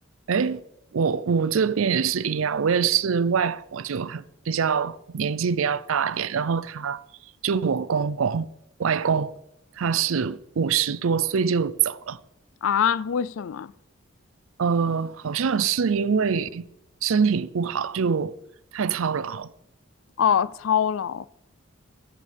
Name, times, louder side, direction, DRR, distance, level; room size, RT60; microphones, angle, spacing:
voice 1, 0.3-0.6 0.9-7.0 7.4-8.5 8.8-9.3 9.8-12.2 14.6-16.7 17.0-18.4 18.7-19.5, right 6 dB, 80° right, 0.5 m, -24 dB
voice 2, 12.6-13.7 20.2-21.3, left 8 dB, 70° left, 0.4 m, -23 dB
15.0 x 14.0 x 3.5 m
head